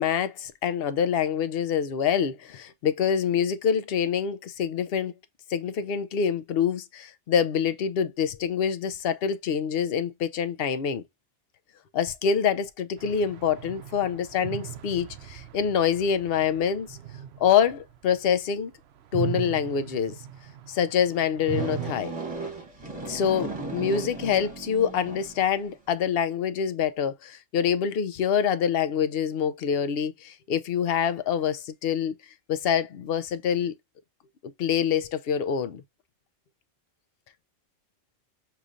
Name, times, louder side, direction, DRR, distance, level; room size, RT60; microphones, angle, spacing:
voice 1, 0.0-5.1 5.5-11.0 11.9-17.0 17.4-18.7 19.1-20.2 20.7-22.1 23.1-32.2 32.5-33.7 34.6-35.8, left 7 dB, 60° left, 0.7 m, -26 dB
sound 1, 13.0-18.6 19.0-21.9, right 11 dB, 65° right, 0.7 m, -38 dB
sound 2, 21.5-25.5, right 3 dB, 30° right, 1.2 m, -36 dB
6.6 x 3.1 x 2.5 m
omnidirectional pair, 1.4 m